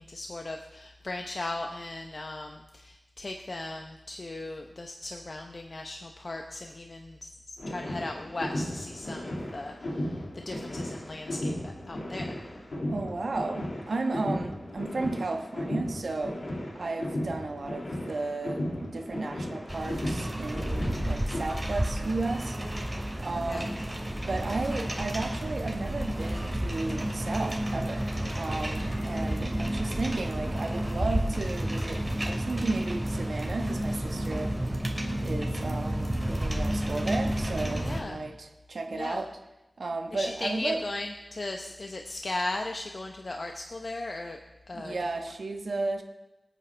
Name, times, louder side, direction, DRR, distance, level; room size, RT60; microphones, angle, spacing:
voice 1, 0.0-12.3 23.5-23.7 37.8-38.2 38.9-39.2 40.1-44.4 44.7-45.0, left 2 dB, 60° left, 3 dB, 0.9 m, -37 dB
sound 1, 7.6-21.4, left 1 dB, 90° left, 2.2 m, -35 dB
voice 2, 12.9-16.4 16.7-22.6 23.2-23.8 24.3-34.8 35.2-39.3 39.8-40.9 44.7-46.0, right 3 dB, 85° right, 4 dB, 1.2 m, -34 dB
sound 2, 19.7-38.0, right 1 dB, 15° right, 2.3 m, -31 dB
25.0 x 9.0 x 3.4 m, 0.99 s
wide cardioid pair, 65°, 0 cm